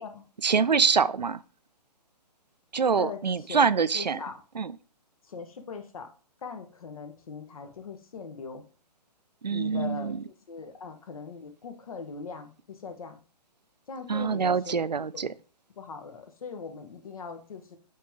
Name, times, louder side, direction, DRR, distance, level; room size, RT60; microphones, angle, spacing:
voice 1, 0.4-1.4 2.7-4.2 4.5-4.7 9.4-10.2 14.1-15.3, right 5 dB, 90° right, 0.5 m, -25 dB
voice 2, 3.0-3.7 3.9-4.4 5.2-6.1 6.4-8.6 9.5-13.2 13.9-15.4 15.8-17.8, left 5 dB, 55° left, 1.3 m, -40 dB
8.6 x 3.7 x 3.7 m
figure-of-eight pair, 135°, 21 cm